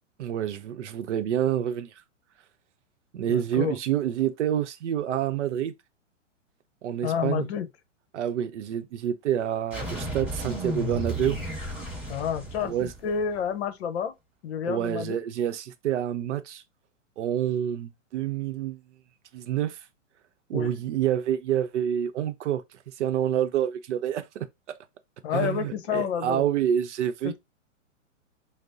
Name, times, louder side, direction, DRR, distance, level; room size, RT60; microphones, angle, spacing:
voice 1, 0.2-1.9 3.1-5.7 6.8-7.5 8.1-11.4 12.6-12.9 14.6-16.6 17.2-18.8 19.3-19.8 20.5-22.6 23.0-24.5 25.3-27.4, right 10 dB, 65° right, 0.7 m, -27 dB
voice 2, 3.3-3.8 7.0-7.7 12.1-14.1 14.4-15.2 20.5-20.7 25.2-26.4 27.2-27.4, left 7 dB, 55° left, 0.9 m, -29 dB
sound 1, 9.7-13.4, right 1 dB, 5° right, 1.9 m, -33 dB
6.1 x 2.0 x 2.7 m
hypercardioid pair, 130°, 38 cm